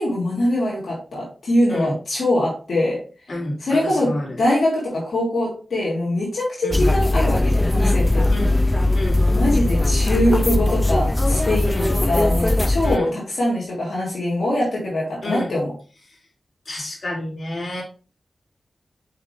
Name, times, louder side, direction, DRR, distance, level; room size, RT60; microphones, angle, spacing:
voice 1, 0.0-3.0 3.6-8.3 9.3-15.7, left 1 dB, 75° left, -6 dB, 2.8 m, -23 dB
voice 2, 3.3-4.4 6.6-6.8 8.3-8.6 8.9-9.3 11.6-11.9 12.8-13.1 15.2-15.5 16.1-16.2 16.6-17.8, left 1 dB, 55° left, -4 dB, 3.3 m, -29 dB
sound 1, 6.7-13.0, left 2 dB, 15° left, 0.4 m, -19 dB
5.7 x 5.7 x 3.4 m, 0.35 s
cardioid pair, 55°, 0 cm